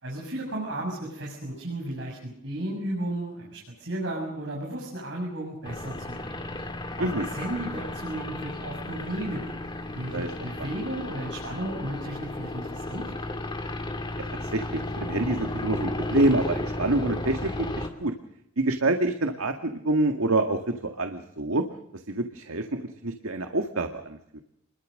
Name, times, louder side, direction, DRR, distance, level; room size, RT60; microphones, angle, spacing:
voice 1, 0.0-6.4 7.0-9.5 9.9-13.1, right 1 dB, 55° right, -1 dB, 7.1 m, -34 dB
sound 1, 5.6-17.9, left 1 dB, 20° left, 2.4 m, -34 dB
voice 2, 10.1-10.7 14.4-18.1 18.6-21.6 21.9-24.4, right 2 dB, 75° right, 6 dB, 1.9 m, -27 dB
29.5 x 22.5 x 6.5 m, 0.76 s
head